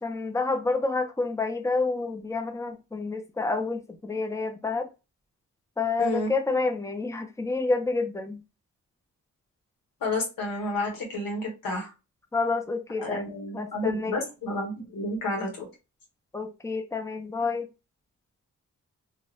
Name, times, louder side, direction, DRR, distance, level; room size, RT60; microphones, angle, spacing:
voice 1, 0.0-4.9 5.8-8.4 12.3-14.1 16.3-17.7, left 3 dB, 10° left, 0.7 m, -29 dB
voice 2, 6.0-6.3 10.0-11.9 13.0-15.6, left 2 dB, 90° left, 1.2 m, -30 dB
2.5 x 2.3 x 3.3 m
supercardioid pair, 45°, 33 cm